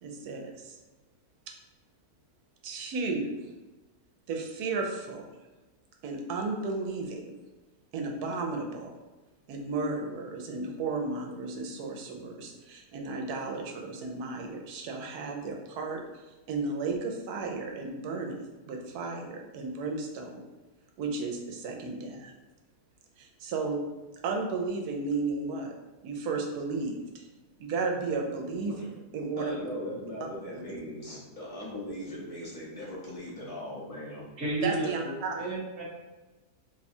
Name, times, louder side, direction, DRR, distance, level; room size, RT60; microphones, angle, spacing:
voice 1, 0.0-0.8 2.6-3.3 4.3-5.2 6.0-7.3 7.9-8.9 9.5-16.0 16.5-20.4 21.0-22.3 23.2-23.9 24.2-25.7 26.0-27.3 27.6-28.7 29.1-29.7 30.5-30.8 34.6-35.4, right 3 dB, 75° right, 2 dB, 1.1 m, -34 dB
voice 2, 28.8-34.2, left 1 dB, 35° left, -7 dB, 0.6 m, -39 dB
voice 3, 34.4-35.8, right 2 dB, 45° right, -8 dB, 1.1 m, -32 dB
2.9 x 2.3 x 4.1 m, 1.2 s
omnidirectional pair, 1.7 m